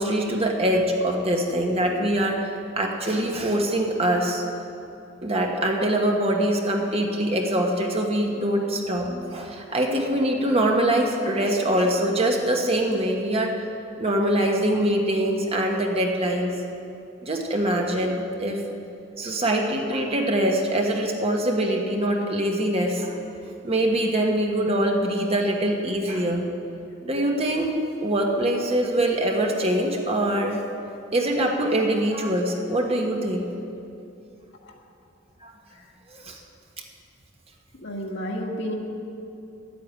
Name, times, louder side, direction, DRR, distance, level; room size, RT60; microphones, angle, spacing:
voice 1, 0.0-2.5 2.8-4.4 5.2-13.5 14.0-16.5 17.2-18.6 19.2-26.4 27.0-27.7 28.0-30.6 31.1-33.5 35.4-35.5 36.1-36.4, right 1 dB, 30° right, 1 dB, 1.3 m, -23 dB
voice 2, 37.8-38.7, equal, 60° left, -1 dB, 2.0 m, -31 dB
12.0 x 8.6 x 9.0 m, 2.7 s
head